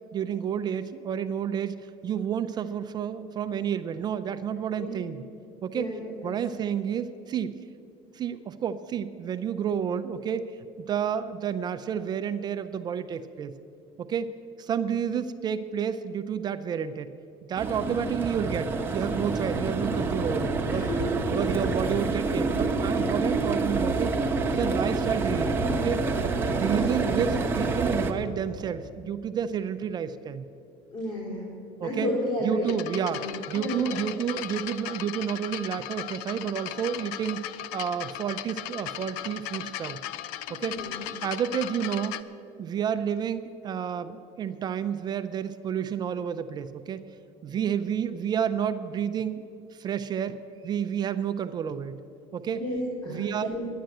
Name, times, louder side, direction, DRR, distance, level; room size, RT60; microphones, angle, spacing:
voice 1, 0.1-1.7 2.0-5.2 5.6-5.9 6.2-7.5 8.1-10.5 10.9-13.6 14.0-14.3 14.6-17.1 17.4-20.9 21.3-24.1 24.5-26.0 26.5-30.4 31.8-32.1 32.4-33.2 33.5-37.4 37.7-40.0 40.5-40.7 41.2-42.2 42.6-47.0 47.4-49.4 49.7-52.0 52.3-52.6 53.1-53.5, right 8 dB, 35° right, 10 dB, 0.5 m, -30 dB
voice 2, 4.8-5.1 5.7-6.1 14.9-15.0 17.7-18.0 20.7-21.1 21.5-21.8 26.5-26.9 30.9-31.5 31.8-32.8 33.1-34.0 40.6-41.0 47.5-47.7 52.5-53.7, left 1 dB, 40° left, -5 dB, 3.5 m, -33 dB
sound 1, 17.6-28.1, right 3 dB, 15° right, 1.0 m, -27 dB
sound 2, 32.6-42.2, left 12 dB, 80° left, 0.5 m, -37 dB
10.5 x 10.0 x 7.8 m, 2.5 s
cardioid pair, 135°, 13 cm